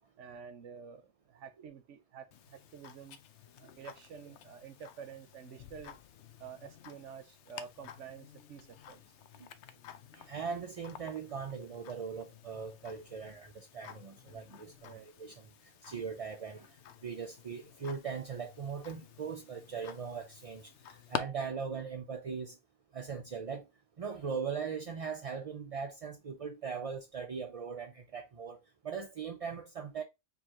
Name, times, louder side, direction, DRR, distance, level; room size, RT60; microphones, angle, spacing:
voice 1, 0.2-3.2 3.6-6.0 6.4-9.0 14.8-15.1, right 6 dB, 90° right, 1.1 m, -49 dB
Tick-tock, 2.3-21.2, left 9 dB, 75° left, 0.9 m, -49 dB
voice 2, 10.1-15.5 15.8-16.7 17.0-22.6 22.9-23.7 24.0-28.6 28.8-30.0, right 6 dB, 45° right, 0.4 m, -40 dB
4.6 x 3.3 x 2.9 m
omnidirectional pair, 1.2 m